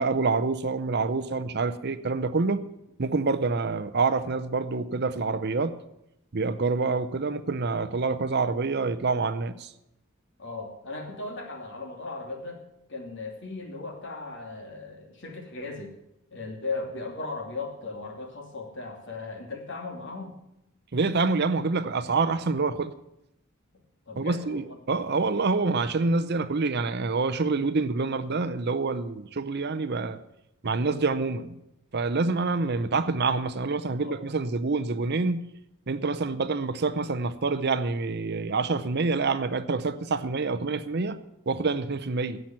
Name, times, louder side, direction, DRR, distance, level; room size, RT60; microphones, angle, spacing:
voice 1, 0.0-2.6 3.0-5.8 6.3-9.7 20.9-22.9 24.2-30.2 30.6-31.6 31.9-35.4 35.9-41.2 41.5-42.4, right 3 dB, 50° right, 13 dB, 0.7 m, -27 dB
voice 2, 10.4-12.6 12.9-16.0 16.3-20.4 24.1-24.7 34.0-34.2, left 3 dB, 55° left, 2 dB, 2.6 m, -37 dB
16.0 x 6.0 x 8.8 m, 0.83 s
head